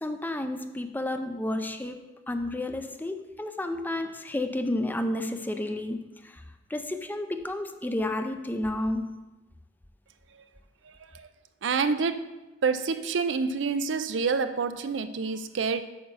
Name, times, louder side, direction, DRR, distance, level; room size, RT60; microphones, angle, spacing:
voice 1, 0.0-6.4 6.7-9.3, left 1 dB, 10° left, 7 dB, 0.5 m, -31 dB
voice 2, 10.8-11.3 11.6-12.3 12.6-15.8, right 5 dB, 80° right, 10 dB, 0.5 m, -28 dB
8.7 x 6.6 x 4.0 m, 1.1 s
head